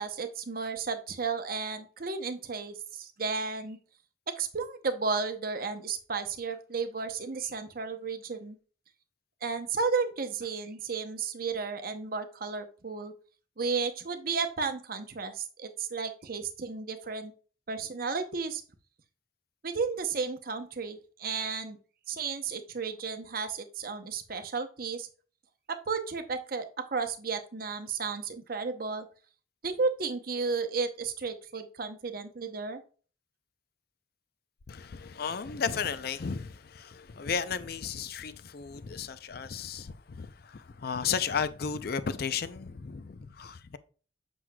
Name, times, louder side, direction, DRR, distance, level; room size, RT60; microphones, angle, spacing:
voice 1, 0.0-3.8 4.4-8.6 9.4-13.1 13.6-17.3 17.7-18.6 19.6-21.8 22.1-25.1 25.7-29.1 29.6-32.8, right 4 dB, 50° right, 0.7 m, -33 dB
voice 2, 34.7-43.8, left 6 dB, 50° left, 0.5 m, -34 dB
7.6 x 6.1 x 2.2 m
head